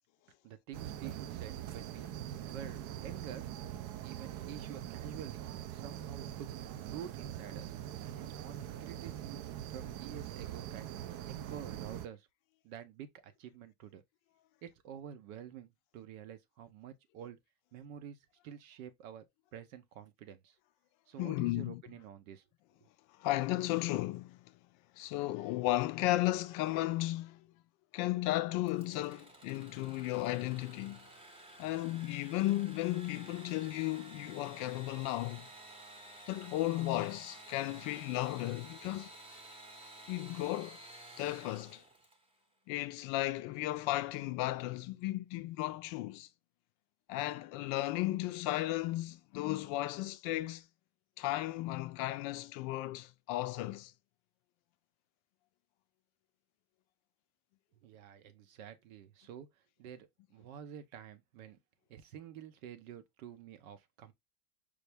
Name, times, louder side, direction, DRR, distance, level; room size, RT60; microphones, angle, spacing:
voice 1, 0.4-2.1 2.5-3.5 4.0-5.4 5.7-6.5 6.8-7.7 8.1-10.9 11.5-12.3 12.6-14.0 14.6-17.4 17.7-18.2 18.4-19.2 19.5-20.5 21.1-22.4 57.8-59.5 59.8-61.6 61.9-64.1, right 9 dB, 70° right, 0.8 m, -49 dB
sound 1, 0.7-12.1, right 11 dB, 45° right, 0.5 m, -43 dB
voice 2, 21.2-21.8 23.2-24.5 25.0-27.5 27.9-31.0 31.6-35.5 36.3-39.1 40.1-40.8 41.2-41.8 42.7-46.3 47.1-50.6 51.2-53.9, left 16 dB, 50° left, 0.5 m, -34 dB
Engine / Sawing, 28.6-42.3, right 1 dB, 15° right, 0.8 m, -53 dB
4.8 x 2.0 x 3.4 m
hypercardioid pair, 100°, 42 cm